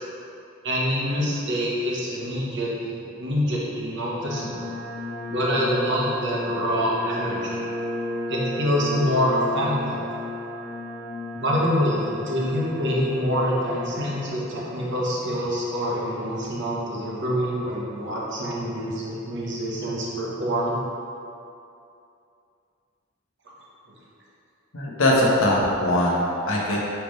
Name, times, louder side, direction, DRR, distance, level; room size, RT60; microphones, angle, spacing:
voice 1, 0.6-4.7 5.3-7.6 8.3-10.0 11.3-20.8, equal, 55° right, -5 dB, 1.2 m, -26 dB
sound 1, 4.2-14.3, left 1 dB, 15° left, 1.1 m, -33 dB
voice 2, 24.7-26.8, left 1 dB, 70° left, -4 dB, 1.2 m, -21 dB
9.0 x 3.4 x 3.2 m, 2.6 s
head